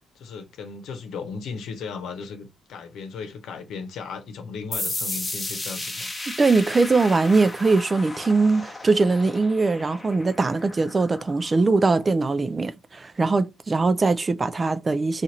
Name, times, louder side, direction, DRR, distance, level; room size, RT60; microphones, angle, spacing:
voice 1, 0.1-6.1, left 5 dB, 80° left, 0.8 m, -36 dB
sound 1, 4.7-12.1, left 2 dB, 15° left, 0.9 m, -35 dB
voice 2, 6.4-15.2, right 3 dB, 30° right, 0.4 m, -21 dB
2.9 x 2.5 x 4.0 m
cardioid pair, 90°, 0 cm